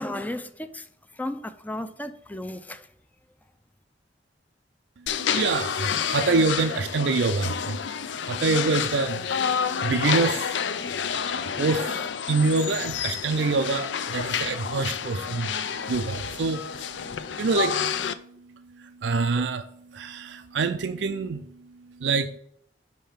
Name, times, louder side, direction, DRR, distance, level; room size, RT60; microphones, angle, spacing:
voice 1, 0.0-2.9, left 1 dB, 10° left, 0.5 m, -34 dB
sound 1, 5.1-18.1, left 7 dB, 80° left, 0.5 m, -29 dB
voice 2, 5.3-7.8 8.2-9.3 9.5-10.6 11.4-16.6 17.4-17.9 18.8-21.5 22.0-22.3, right 4 dB, 75° right, 0.5 m, -26 dB
5.6 x 5.2 x 5.8 m
head